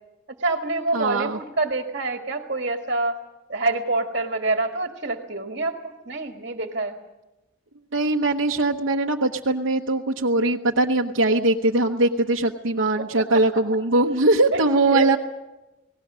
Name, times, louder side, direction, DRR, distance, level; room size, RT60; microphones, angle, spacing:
voice 1, 0.4-3.2 3.5-5.8 6.1-7.0 13.3-13.4 14.5-15.1, right 2 dB, 50° right, 5 dB, 1.8 m, -26 dB
voice 2, 0.9-1.4 7.9-15.2, right 2 dB, 75° right, 0 dB, 1.0 m, -21 dB
29.5 x 18.5 x 6.2 m, 1.0 s
head